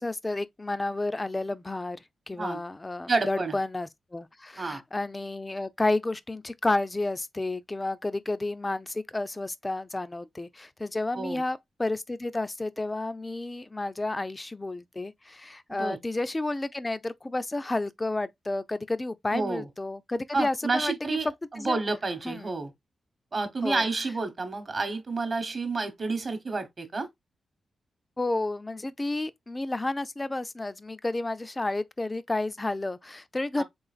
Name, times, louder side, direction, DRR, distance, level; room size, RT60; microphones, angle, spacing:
voice 1, 0.0-2.0 2.3-21.2 21.6-21.8 22.3-22.5 23.6-23.9 28.2-33.6, left 2 dB, 20° left, 0.4 m, -31 dB
voice 2, 3.1-3.6 4.6-4.8 11.1-11.4 15.7-16.0 19.3-19.7 20.3-22.7 23.3-27.1 33.6-33.7, right 3 dB, 40° right, 0.9 m, -30 dB
3.8 x 3.8 x 2.4 m
wide cardioid pair, 130°, 0 cm